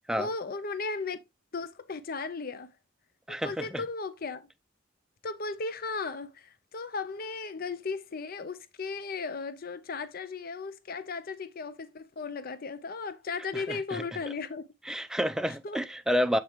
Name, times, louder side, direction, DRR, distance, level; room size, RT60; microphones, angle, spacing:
voice 1, 0.2-1.2 1.5-2.7 3.3-4.5 5.2-15.0 15.6-15.8, left 4 dB, 50° left, 0.6 m, -36 dB
voice 2, 3.3-3.8 13.5-14.0 14.9-16.4, equal, 5° right, 0.5 m, -29 dB
7.4 x 5.0 x 3.0 m
head